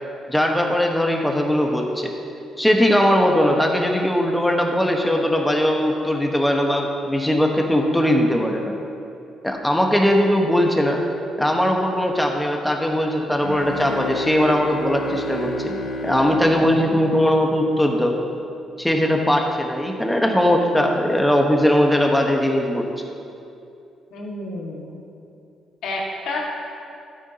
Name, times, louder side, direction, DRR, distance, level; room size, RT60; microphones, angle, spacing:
voice 1, 0.3-2.1 2.6-8.8 9.4-11.0 11.4-18.2 18.8-23.0, equal, 5° left, 1 dB, 1.3 m, -20 dB
sound 1, 13.4-18.1, left 1 dB, 70° left, 1.3 m, -31 dB
voice 2, 24.1-25.0 25.8-26.4, left 2 dB, 85° left, -2 dB, 1.9 m, -30 dB
13.0 x 9.5 x 2.9 m, 2.7 s
cardioid pair, 90°, 0 cm